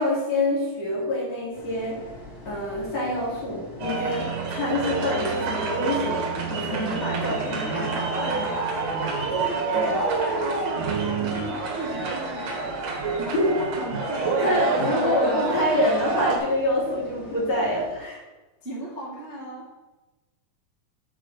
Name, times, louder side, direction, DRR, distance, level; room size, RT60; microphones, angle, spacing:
voice 1, 0.0-2.1 2.4-6.2 6.5-8.1 9.7-10.0 13.3-13.5 14.4-18.2, left 1 dB, 45° left, -5 dB, 3.2 m, -26 dB
sound 1, 1.5-18.0, equal, 20° left, 1.9 m, -44 dB
sound 2, 3.8-16.4, right 4 dB, 55° right, 2.4 m, -27 dB
voice 2, 7.8-8.7 9.3-12.6 13.2-15.5 18.6-19.6, equal, 5° right, -6 dB, 1.4 m, -36 dB
7.5 x 4.9 x 7.1 m, 1.1 s
omnidirectional pair, 4.3 m